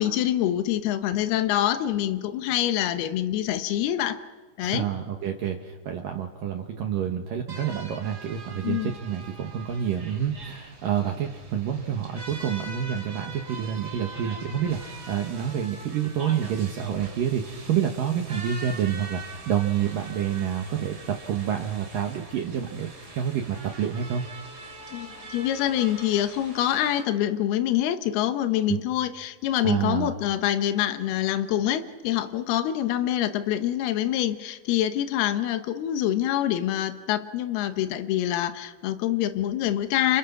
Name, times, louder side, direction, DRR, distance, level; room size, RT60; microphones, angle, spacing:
voice 1, 0.0-4.2 4.6-4.9 8.6-8.9 24.9-40.2, left 12 dB, 75° left, 10 dB, 2.4 m, -25 dB
voice 2, 4.6-22.9 23.1-24.2 28.7-28.8 29.6-30.1, right 9 dB, 75° right, 3 dB, 2.0 m, -28 dB
sound 1, 7.5-27.0, right 3 dB, 25° right, 2.4 m, -43 dB
29.0 x 28.5 x 6.0 m, 1.4 s
omnidirectional pair, 5.9 m